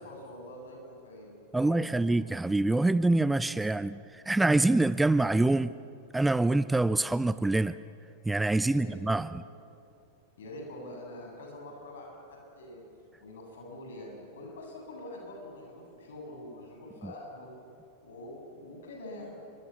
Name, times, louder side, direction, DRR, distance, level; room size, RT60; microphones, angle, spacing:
voice 1, 0.0-2.1 8.6-9.3 10.4-12.8 13.2-17.5 18.0-19.4, left 1 dB, 70° left, 1 dB, 7.9 m, -45 dB
voice 2, 1.5-5.7 6.1-7.8 8.2-9.4 17.0-17.1, right 2 dB, 10° right, 16 dB, 0.5 m, -25 dB
28.5 x 24.0 x 7.3 m, 2.6 s
figure-of-eight pair, 90°, 0 cm